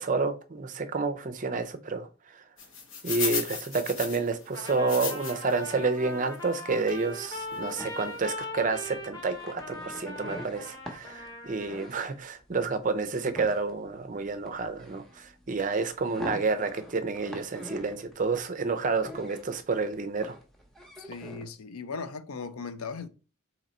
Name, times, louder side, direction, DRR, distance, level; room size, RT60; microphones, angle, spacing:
voice 1, 0.0-2.1 3.0-20.4, right 4 dB, 35° right, 0.5 m, -29 dB
sound 1, 2.6-5.6 6.0-6.1 6.9-7.0 7.5-7.6 7.8-8.0, left 6 dB, 65° left, 1.1 m, -34 dB
Trumpet, 4.5-11.9, left 2 dB, 20° left, 1.0 m, -40 dB
sound 2, 6.9-21.5, equal, ahead, 0.7 m, -46 dB
voice 2, 21.0-23.1, left 5 dB, 85° left, 0.5 m, -38 dB
3.9 x 2.9 x 4.2 m
head